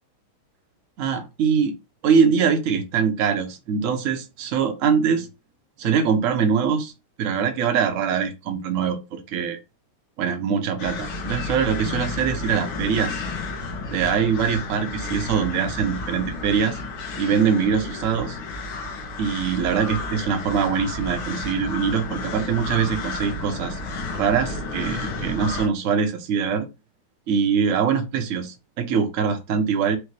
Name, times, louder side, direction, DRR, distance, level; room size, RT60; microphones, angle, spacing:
voice 1, 1.0-1.8 2.0-5.3 5.8-6.9 7.2-9.6 10.2-13.2 13.9-16.8 17.2-18.4 19.2-23.8 24.1-26.7 27.3-30.0, right 6 dB, 60° right, 0.9 m, -23 dB
sound 1, 10.8-25.7, left 3 dB, 85° left, 2.0 m, -32 dB
4.9 x 2.7 x 3.2 m
omnidirectional pair, 2.3 m